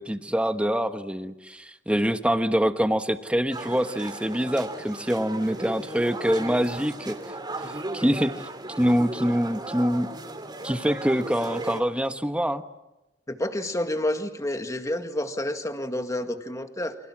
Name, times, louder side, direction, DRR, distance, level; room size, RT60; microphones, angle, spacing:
voice 1, 0.0-7.2 7.6-8.3 8.8-10.1 10.6-12.6, equal, 5° right, 9 dB, 1.2 m, -25 dB
sound 1, 3.5-11.8, right 2 dB, 25° right, 2.8 m, -36 dB
voice 2, 13.3-17.0, left 1 dB, 20° left, 7 dB, 1.9 m, -29 dB
30.0 x 25.5 x 7.4 m, 0.98 s
head